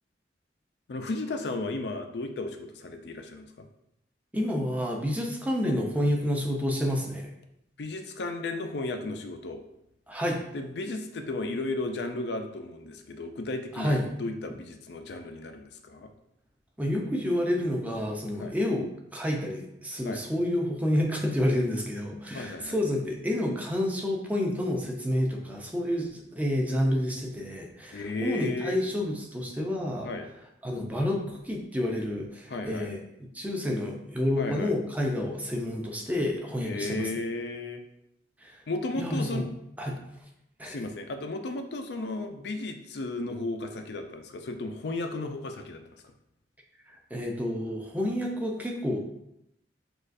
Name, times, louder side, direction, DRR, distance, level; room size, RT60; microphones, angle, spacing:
voice 1, 0.9-3.7 7.8-9.6 10.5-16.1 18.4-18.5 20.0-20.2 22.3-22.8 27.9-28.8 30.0-30.3 32.5-32.9 34.4-34.7 36.6-37.8 38.7-39.5 40.6-46.1, left 2 dB, 65° left, 6 dB, 0.5 m, -34 dB
voice 2, 4.3-7.3 10.1-10.4 13.7-14.1 16.8-30.1 30.6-33.0 33.3-37.1 38.4-38.6 38.9-39.4 39.8-40.0 40.6-40.8 47.1-49.0, left 1 dB, 10° right, 0 dB, 0.6 m, -29 dB
6.3 x 2.4 x 2.5 m, 0.81 s
head